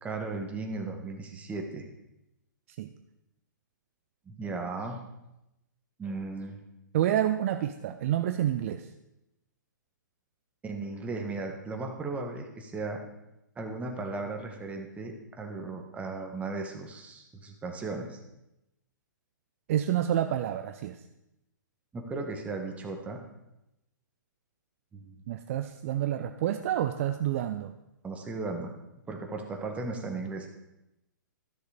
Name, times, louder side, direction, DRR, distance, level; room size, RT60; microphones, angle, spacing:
voice 1, 0.0-1.9 4.2-5.0 6.0-6.6 10.6-13.0 13.6-18.2 21.9-23.2 24.9-25.2 28.0-28.7 29.1-30.5, right 3 dB, 10° right, 3 dB, 1.5 m, -36 dB
voice 2, 6.9-8.9 19.7-21.0 25.3-27.7, right 11 dB, 45° right, 8 dB, 0.6 m, -28 dB
13.0 x 6.6 x 5.0 m, 0.91 s
hypercardioid pair, 125°, 10 cm